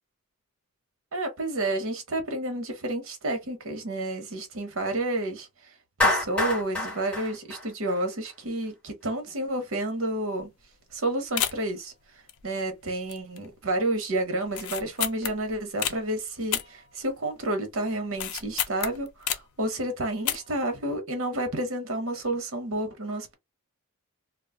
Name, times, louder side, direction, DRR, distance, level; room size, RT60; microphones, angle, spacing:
voice 1, 1.1-5.5 6.0-10.5 10.9-11.9 12.4-23.3, right 1 dB, 65° right, 0.9 m, -30 dB
Clapping, 6.0-8.3, left 1 dB, 5° left, 1.5 m, -26 dB
sound 1, 10.4-10.6 10.9-11.0 11.4-11.8 12.3-12.8 13.1-13.5 13.8-13.9 14.5-16.0 16.5-17.4 17.7-19.6 20.1-20.7 20.9-21.0, left 10 dB, 85° left, 0.5 m, -31 dB
2.3 x 2.3 x 3.5 m
head